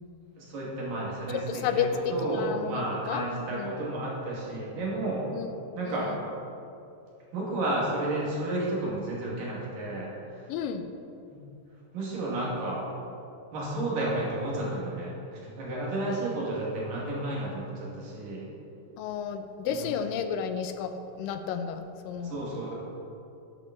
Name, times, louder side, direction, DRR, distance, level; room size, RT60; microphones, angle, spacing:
voice 1, 0.4-5.3 5.8-6.1 7.3-10.5 11.3-11.4 11.9-12.8 13.5-18.5 19.7-19.9 22.2-22.7, right 2 dB, 80° right, -4 dB, 4.1 m, -32 dB
voice 2, 1.3-3.2 3.5-3.7 5.3-5.5 5.9-6.1 10.5-10.9 19.0-22.4, left 7 dB, 85° left, 9 dB, 2.4 m, -32 dB
11.5 x 11.0 x 4.2 m, 2.7 s
omnidirectional pair, 3.9 m